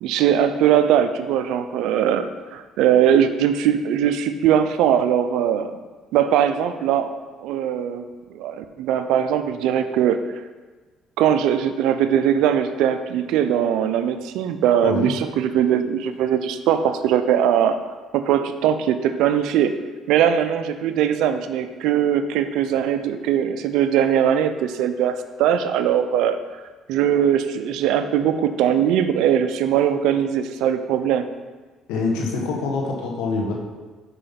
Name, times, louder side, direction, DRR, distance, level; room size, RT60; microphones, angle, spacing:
voice 1, 0.0-5.8 6.1-8.0 8.3-10.2 11.2-17.8 18.1-19.7 20.1-26.4 26.9-31.3, right 9 dB, 80° right, 10 dB, 0.5 m, -20 dB
voice 2, 14.8-15.1 31.9-33.5, left 3 dB, 85° left, -1 dB, 1.3 m, -25 dB
5.5 x 5.0 x 5.7 m, 1.3 s
supercardioid pair, 85°, 0 cm